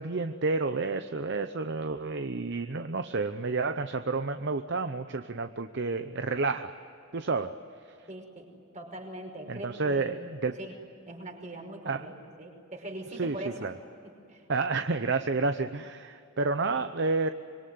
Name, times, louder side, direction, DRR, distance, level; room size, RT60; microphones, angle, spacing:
voice 1, 0.0-6.7 7.1-7.5 9.5-10.6 11.9-12.1 13.2-13.4 13.6-13.7 14.5-17.3, right 3 dB, 60° right, 9 dB, 0.8 m, -30 dB
voice 2, 8.1-8.5 8.7-10.2 10.6-10.7 11.1-13.7 14.0-14.4, right 1 dB, 40° right, 2 dB, 5.4 m, -41 dB
25.5 x 22.5 x 9.4 m, 2.6 s
head